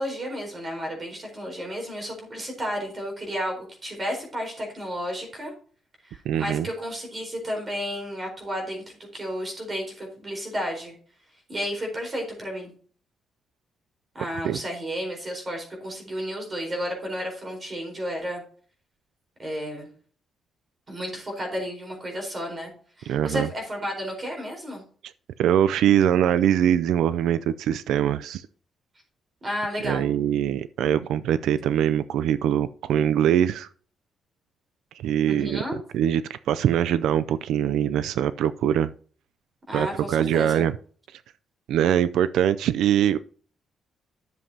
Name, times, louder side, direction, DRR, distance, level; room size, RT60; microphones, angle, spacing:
voice 1, 0.0-5.5 6.0-10.9 11.5-12.7 14.1-18.4 19.4-19.9 20.9-22.7 23.0-24.8 29.4-30.1 35.3-35.8 39.7-40.7, equal, 20° right, 1 dB, 4.2 m, -32 dB
voice 2, 6.3-6.7 14.4-14.6 23.1-23.5 25.4-28.5 29.8-33.7 35.0-38.9 39.7-40.8 41.7-43.2, right 10 dB, 85° right, 14 dB, 0.4 m, -23 dB
11.5 x 7.3 x 2.8 m, 0.44 s
cardioid pair, 170°, 0 cm